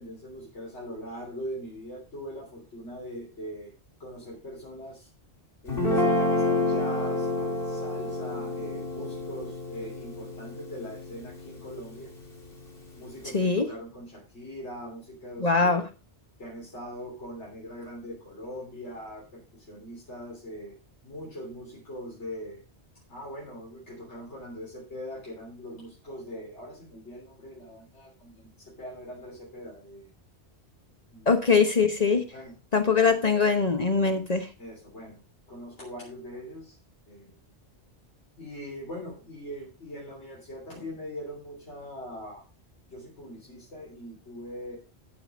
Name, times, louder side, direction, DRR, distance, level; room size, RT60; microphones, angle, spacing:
voice 1, 0.0-3.7 4.0-5.1 5.6-12.1 13.0-15.8 16.4-20.8 21.0-22.6 23.1-30.1 31.1-31.4 32.3-32.6 34.6-35.2 35.5-36.8 37.1-37.4 38.4-42.4 42.9-44.8, equal, 85° left, -5 dB, 3.8 m, -41 dB
Guitar, 5.7-12.0, left 2 dB, 55° left, 3.0 m, -29 dB
voice 2, 13.3-13.7 15.4-15.8 31.3-32.2 32.7-34.5, left 5 dB, 40° left, 5 dB, 1.1 m, -22 dB
13.5 x 4.9 x 5.1 m, 0.32 s
omnidirectional pair, 1.1 m